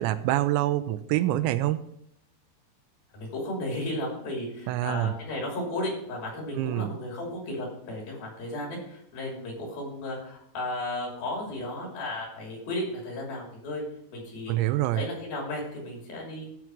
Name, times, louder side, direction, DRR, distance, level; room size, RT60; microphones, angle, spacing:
voice 1, 0.0-1.8 4.7-5.1 6.6-6.9 14.5-15.0, right 14 dB, 85° right, 12 dB, 2.9 m, -26 dB
voice 2, 3.1-13.8 14.1-16.5, left 1 dB, 55° left, -1 dB, 4.5 m, -34 dB
13.5 x 4.6 x 6.0 m, 0.73 s
omnidirectional pair, 5.2 m